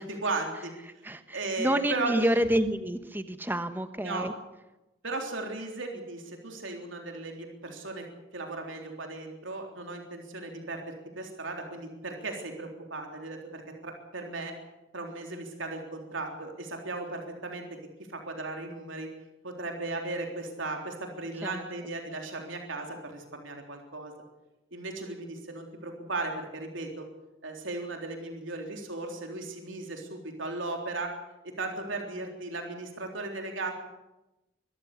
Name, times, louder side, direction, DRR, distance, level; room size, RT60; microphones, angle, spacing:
voice 1, 0.1-0.7 1.3-2.4 4.0-4.3 5.0-8.1 8.3-14.5 14.9-17.7 18.1-19.1 19.4-24.1 24.7-27.1 27.4-31.1 31.4-33.7, right 2 dB, 80° right, 2 dB, 3.7 m, -36 dB
voice 2, 1.0-4.3 21.4-21.6, right 1 dB, 10° right, 10 dB, 1.1 m, -28 dB
24.0 x 14.0 x 8.4 m, 0.99 s
head